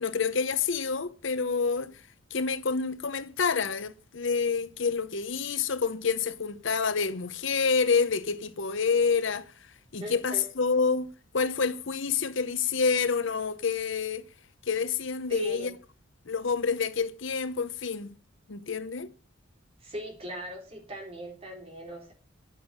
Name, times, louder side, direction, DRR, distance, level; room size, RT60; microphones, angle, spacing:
voice 1, 0.0-2.0 2.3-14.3 14.7-15.7 16.3-18.1 18.5-19.1, left 5 dB, 65° left, 0.8 m, -28 dB
voice 2, 10.0-10.5 15.3-15.7 19.8-22.1, equal, 30° right, 3.7 m, -39 dB
9.1 x 9.0 x 9.0 m
head